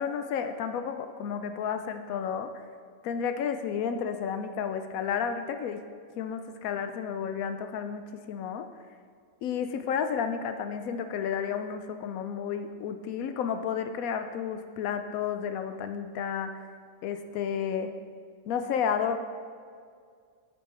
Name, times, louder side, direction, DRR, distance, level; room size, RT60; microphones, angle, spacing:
voice 1, 0.0-2.5 3.0-5.8 6.2-8.0 8.3-8.7 9.4-16.6 17.0-17.9 18.5-19.2, left 7 dB, 80° left, 8 dB, 1.0 m, -31 dB
9.5 x 5.4 x 4.4 m, 2.1 s
omnidirectional pair, 1.5 m